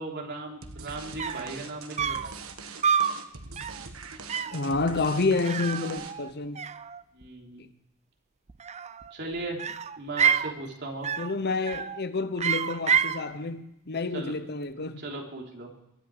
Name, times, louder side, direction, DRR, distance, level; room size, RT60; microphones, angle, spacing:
voice 1, 0.0-2.2 7.1-7.6 9.1-9.6 10.0-11.1 14.1-14.4 15.0-15.7, right 2 dB, 55° right, 3.4 m, -37 dB
sound 1, 0.6-6.4, right 4 dB, 75° right, 1.4 m, -43 dB
sound 2, 0.9-1.0 1.2-1.5 2.0-2.4 2.8-3.2 3.6-3.9 4.3-4.6 5.4-6.3 6.6-7.3 8.5-9.1 9.6-10.5 11.0-11.4 11.7-12.0 12.4-13.2, right 7 dB, 30° right, 0.5 m, -28 dB
voice 2, 4.5-6.6 7.6-7.7 11.2-15.0, left 3 dB, 50° left, 0.9 m, -29 dB
22.5 x 10.5 x 4.9 m
head